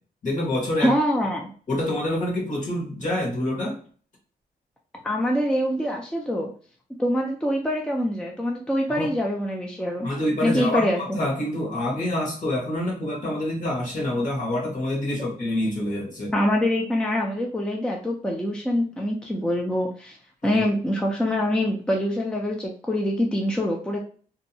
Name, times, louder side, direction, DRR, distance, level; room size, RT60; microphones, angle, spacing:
voice 1, 0.2-1.0 1.7-3.8 8.9-9.1 10.0-16.3 20.4-20.6, left 1 dB, 50° left, -1 dB, 1.3 m, -26 dB
voice 2, 0.8-1.5 5.0-6.5 7.0-10.1 10.4-11.2 16.3-20.2 20.4-24.0, equal, 5° left, 0 dB, 0.4 m, -25 dB
2.7 x 2.1 x 2.6 m, 0.43 s
cardioid pair, 90°, 16 cm